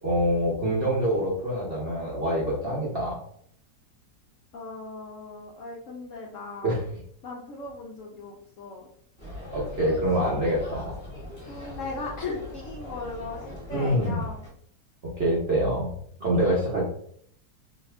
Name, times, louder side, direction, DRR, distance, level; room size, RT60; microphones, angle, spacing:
voice 1, 0.0-3.2 6.6-6.8 9.5-10.9 11.4-11.7 13.7-14.2 15.0-15.9 16.2-16.9, equal, 55° right, -5 dB, 0.7 m, -25 dB
voice 2, 4.5-6.8 7.2-8.9 11.5-14.4 16.4-16.6, left 3 dB, 75° left, -2 dB, 0.7 m, -38 dB
sound 1, 9.2-14.5, left 1 dB, 20° left, 1.3 m, -41 dB
2.8 x 2.5 x 3.2 m, 0.65 s
omnidirectional pair, 1.8 m